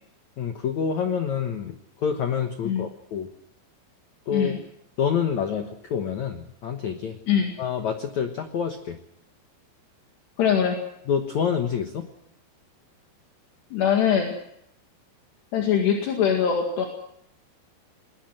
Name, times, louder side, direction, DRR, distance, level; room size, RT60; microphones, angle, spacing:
voice 1, 0.4-3.3 4.3-4.6 5.0-7.2 7.6-9.0 11.1-12.1, left 7 dB, 90° left, 6 dB, 1.6 m, -27 dB
voice 2, 10.4-10.8 13.7-14.3 15.5-16.9, left 8 dB, 65° left, 2 dB, 4.0 m, -22 dB
21.0 x 20.0 x 7.7 m, 0.76 s
omnidirectional pair, 5.4 m